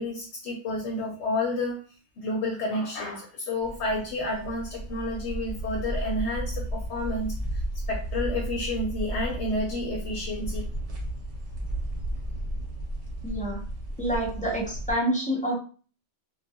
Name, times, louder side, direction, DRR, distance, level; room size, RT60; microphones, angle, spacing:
voice 1, 0.0-1.8 2.2-7.3 7.9-10.7, left 2 dB, 70° left, 0 dB, 0.9 m, -30 dB
sound 1, 3.6-14.9, right 1 dB, 70° right, 1.0 m, -33 dB
voice 2, 13.2-13.6 14.0-15.6, equal, 10° left, -3 dB, 0.4 m, -27 dB
2.3 x 2.2 x 2.7 m, 0.39 s
omnidirectional pair, 1.2 m